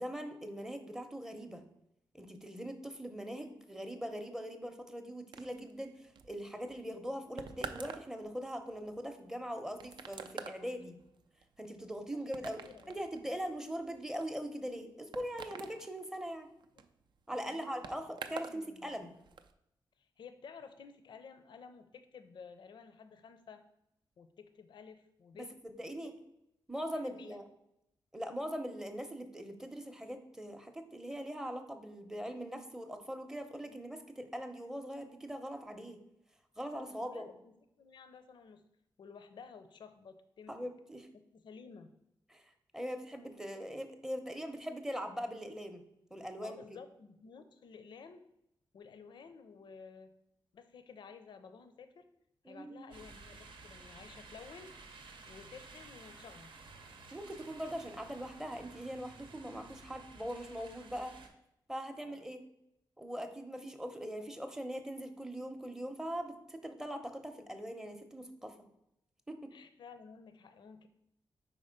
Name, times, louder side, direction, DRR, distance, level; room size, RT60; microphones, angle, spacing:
voice 1, 0.0-1.6 2.1-11.0 11.6-16.5 17.3-19.2 25.3-26.1 26.7-27.4 28.1-36.0 36.6-37.3 40.5-41.1 42.3-45.8 46.1-46.6 52.5-52.9 57.1-61.1 61.7-62.4 63.0-68.6 69.3-69.5, equal, 5° right, 7 dB, 0.6 m, -41 dB
sound 1, 5.3-18.6 18.9-19.5, right 6 dB, 65° right, 0.4 m, -48 dB
voice 2, 12.6-13.0 17.4-18.0 18.3-18.9 20.0-23.6 24.2-25.5 26.9-27.4 33.7-33.9 36.9-38.6 39.0-40.6 41.1-41.9 46.4-48.2 48.7-50.1 50.5-52.0 52.4-54.8 55.3-56.5 62.0-62.2 69.5-70.9, left 5 dB, 70° left, 10 dB, 0.5 m, -53 dB
sound 2, 52.9-61.3, right 3 dB, 85° right, 0.8 m, -54 dB
4.9 x 4.2 x 5.0 m, 0.82 s
wide cardioid pair, 115°, 8 cm